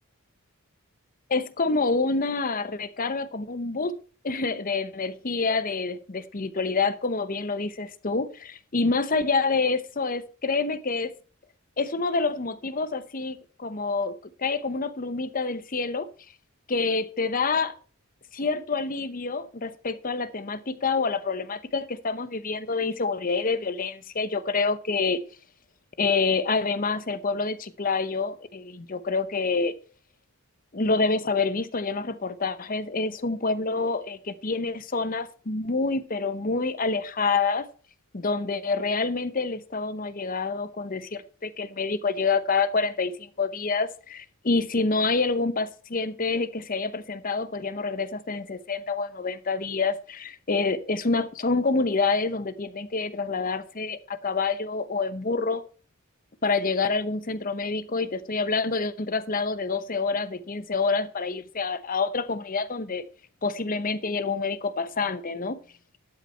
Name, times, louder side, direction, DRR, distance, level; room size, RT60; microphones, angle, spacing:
voice 1, 1.3-4.0 4.2-11.1 11.8-14.1 14.4-16.1 16.7-17.7 18.3-25.2 26.0-29.7 30.7-37.7 38.1-55.6 56.4-63.0 63.4-65.6, left 4 dB, 40° left, 0.8 m, -27 dB
12.0 x 8.3 x 4.4 m
head